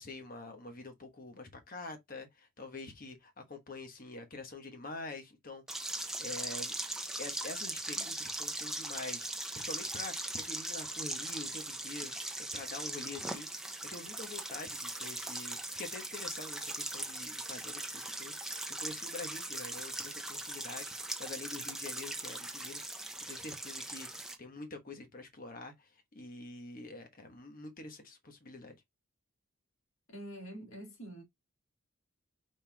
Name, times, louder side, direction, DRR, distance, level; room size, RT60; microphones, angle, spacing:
voice 1, 0.0-5.6 6.0-6.7 7.2-9.3 9.5-20.9 21.2-28.8, left 2 dB, 40° left, 1.1 m, -46 dB
sound 1, 5.7-24.3, right 2 dB, ahead, 0.8 m, -40 dB
voice 2, 30.1-31.2, right 1 dB, 80° left, 2.1 m, -45 dB
5.5 x 4.3 x 2.2 m
head